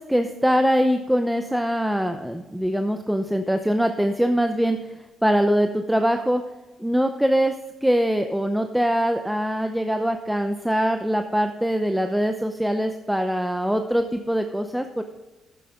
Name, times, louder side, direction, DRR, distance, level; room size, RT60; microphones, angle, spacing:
voice 1, 0.0-4.8 5.2-6.4 6.8-7.6 7.8-15.0, equal, 5° right, 6 dB, 0.7 m, -23 dB
11.5 x 9.1 x 3.7 m, 1.1 s
cardioid pair, 90°, 0 cm